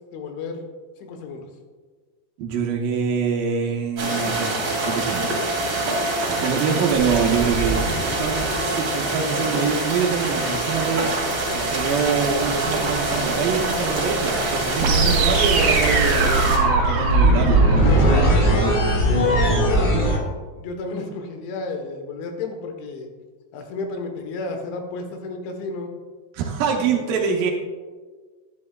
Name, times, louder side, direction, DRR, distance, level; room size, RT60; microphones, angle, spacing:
voice 1, 0.1-0.6 1.0-1.4 6.2-6.5 19.2-20.1 20.6-23.1 23.5-25.9 26.7-27.0, left 3 dB, 85° left, 4 dB, 3.5 m, -32 dB
voice 2, 2.4-5.3 6.3-7.8 8.2-11.1 11.5-18.1 26.3-27.5, right 6 dB, 85° right, -1 dB, 2.0 m, -25 dB
sound 1, 4.0-16.6, right 2 dB, 35° right, 2.5 m, -25 dB
sound 2, 5.5-5.7 6.9-9.0 10.9-20.2, right 1 dB, 65° left, 4.4 m, -22 dB
sound 3, 14.8-18.8, right 3 dB, 65° right, 3.4 m, -22 dB
11.0 x 11.0 x 2.3 m, 1.4 s
omnidirectional pair, 5.2 m